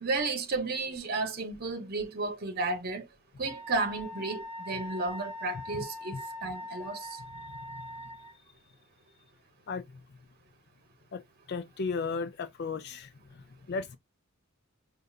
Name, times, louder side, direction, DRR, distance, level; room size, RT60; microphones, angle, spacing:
voice 1, 0.0-3.1 3.4-7.2, right 3 dB, 50° right, 0.9 m, -33 dB
Wind instrument woodwind instrument, 3.4-8.4, left 1 dB, 10° left, 1.0 m, -42 dB
voice 2, 7.3-7.9 9.7-9.9 11.1-11.2 11.5-14.0, left 4 dB, 55° left, 0.5 m, -36 dB
5.3 x 2.6 x 2.3 m
head